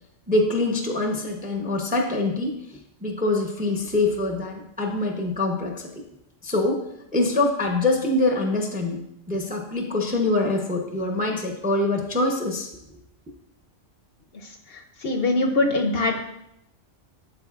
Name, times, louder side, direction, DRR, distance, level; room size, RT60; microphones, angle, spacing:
voice 1, 0.3-2.5 3.0-5.9 6.4-6.8 7.1-9.0 9.3-12.7, left 2 dB, 10° right, 1 dB, 0.5 m, -24 dB
voice 2, 14.7-16.2, left 2 dB, 60° left, 4 dB, 0.8 m, -23 dB
11.5 x 3.9 x 2.4 m, 0.81 s
omnidirectional pair, 1.3 m